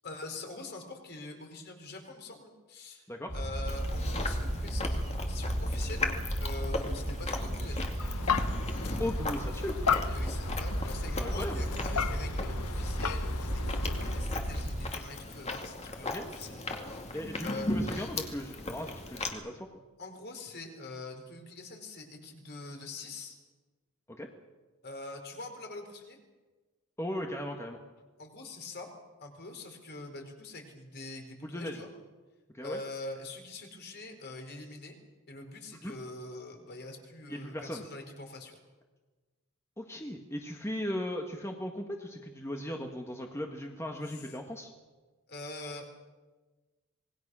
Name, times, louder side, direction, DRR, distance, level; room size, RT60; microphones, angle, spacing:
voice 1, 0.0-3.1 3.3-6.1 6.4-7.9 10.1-16.6 16.9-17.1 17.4-17.7 20.0-23.4 24.8-26.2 28.2-28.9 29.2-31.9 32.6-35.0 35.3-38.6 44.1-44.3 45.3-46.0, left 2 dB, 50° left, 4 dB, 4.2 m, -44 dB
sound 1, 3.3-14.9, equal, 40° right, 2.7 m, -34 dB
Chewing mastication, 3.7-19.3, left 2 dB, 30° left, 2.5 m, -38 dB
sound 2, 8.0-14.2, left 6 dB, 85° left, 1.0 m, -35 dB
voice 2, 9.0-9.8 11.1-11.7 16.1-16.2 17.1-19.7 24.1-24.3 27.0-27.8 31.4-31.8 32.5-32.8 35.8-35.9 37.3-37.8 39.8-44.7, left 1 dB, 10° left, 2 dB, 1.7 m, -37 dB
26.5 x 20.5 x 6.3 m, 1.3 s
head